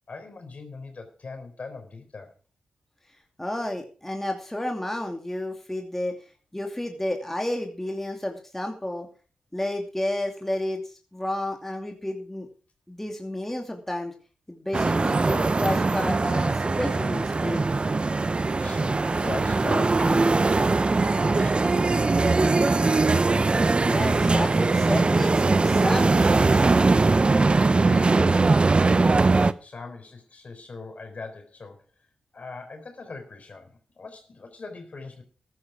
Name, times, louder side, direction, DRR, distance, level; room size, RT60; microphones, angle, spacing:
voice 1, 0.1-2.3 18.6-22.2 27.8-28.4 29.2-31.9 32.3-35.2, left 4 dB, 50° left, 6 dB, 4.2 m, -40 dB
voice 2, 3.4-6.2 6.5-9.1 9.5-10.8 11.1-12.5 12.9-14.1 14.5-17.6 23.9-26.6, left 1 dB, 10° left, 3 dB, 2.7 m, -31 dB
sound 1, 14.7-29.5, right 3 dB, 35° right, 0.8 m, -21 dB
14.0 x 10.5 x 4.9 m, 0.39 s
supercardioid pair, 45°, 3 cm